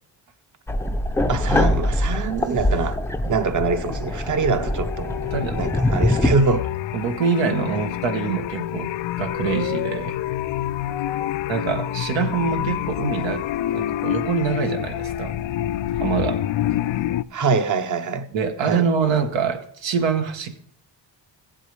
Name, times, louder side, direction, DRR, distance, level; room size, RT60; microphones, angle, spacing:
sound 1, 0.7-6.3, left 1 dB, 5° left, 0.4 m, -23 dB
voice 1, 1.3-3.0 3.3-5.1 5.6-6.7 17.3-18.3 18.6-18.8, right 4 dB, 45° right, 1.0 m, -23 dB
sound 2, 3.9-17.2, left 12 dB, 85° left, 0.5 m, -27 dB
voice 2, 5.3-5.7 6.9-8.9 9.2-10.2 11.5-13.5 13.7-15.3 15.9-16.5 18.3-20.7, right 6 dB, 85° right, 1.4 m, -25 dB
16.5 x 7.6 x 3.3 m
cardioid pair, 110°, 44 cm